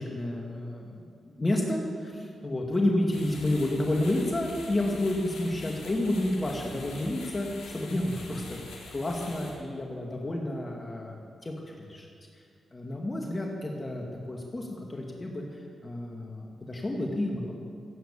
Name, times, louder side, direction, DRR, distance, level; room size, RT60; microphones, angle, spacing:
voice 1, 0.0-8.6 8.9-12.1 12.7-17.5, left 1 dB, 35° left, 0 dB, 2.3 m, -30 dB
sound 1, 3.1-9.5, left 3 dB, 80° left, 3.7 m, -45 dB
16.0 x 9.2 x 7.3 m, 2.3 s
supercardioid pair, 50°, 0 cm